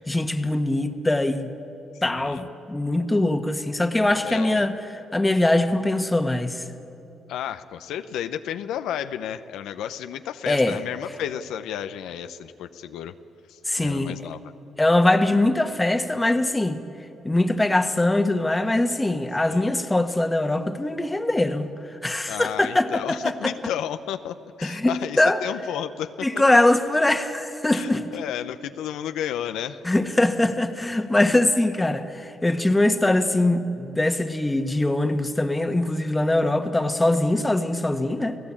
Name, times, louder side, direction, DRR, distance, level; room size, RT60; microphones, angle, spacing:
voice 1, 0.1-1.5 2.0-4.7 5.1-6.6 10.5-10.8 13.7-14.2 14.8-16.8 17.2-21.7 22.0-23.5 24.6-25.4 26.2-28.1 29.8-38.4, left 1 dB, 15° left, 1.5 m, -22 dB
voice 2, 4.2-4.7 7.3-13.1 13.5-14.4 19.5-19.7 22.3-26.1 27.7-29.8, left 10 dB, 85° left, 0.7 m, -32 dB
30.0 x 17.0 x 8.7 m
cardioid pair, 90°, 0 cm